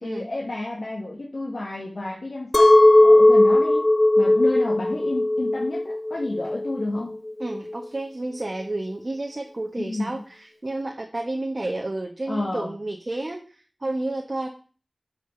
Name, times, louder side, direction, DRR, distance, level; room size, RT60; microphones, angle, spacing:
voice 1, 0.0-3.9 4.2-7.2 9.8-10.1 12.3-12.7, left 2 dB, 75° left, -2 dB, 1.6 m, -30 dB
Chink clink, 2.5-7.7, left 1 dB, 35° left, 0.4 m, -17 dB
voice 2, 7.4-14.5, right 2 dB, 50° right, 1 dB, 1.2 m, -31 dB
8.7 x 5.2 x 6.9 m, 0.39 s
wide cardioid pair, 55°, 0 cm